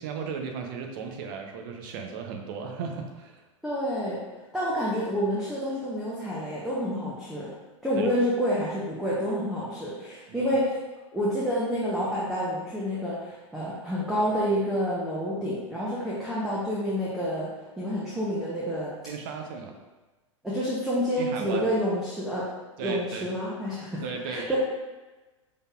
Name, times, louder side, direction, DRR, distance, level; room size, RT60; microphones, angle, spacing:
voice 1, 0.0-3.3 8.0-8.1 10.3-10.5 19.1-19.7 21.2-21.7 22.8-23.3 24.0-24.6, right 5 dB, 45° right, 3 dB, 0.7 m, -35 dB
voice 2, 3.6-4.2 4.5-7.5 7.8-10.7 11.1-17.5 17.8-18.9 20.4-22.4 22.8-24.6, equal, ahead, -8 dB, 0.8 m, -28 dB
5.3 x 4.0 x 2.4 m, 1.2 s
figure-of-eight pair, 95°, 16 cm